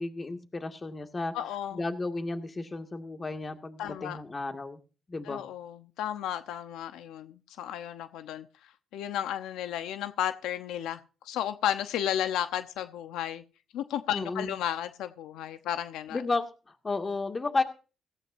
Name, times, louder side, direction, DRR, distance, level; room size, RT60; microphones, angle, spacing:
voice 1, 0.0-1.3 1.7-4.8 5.1-5.4 14.1-14.5 16.1-16.5 16.8-17.6, left 3 dB, 30° left, 2.1 m, -32 dB
voice 2, 1.3-1.8 3.8-4.2 5.2-8.5 8.9-13.4 13.7-16.2, left 10 dB, 90° left, 0.9 m, -33 dB
17.0 x 15.5 x 2.7 m
cardioid pair, 90°, 0 cm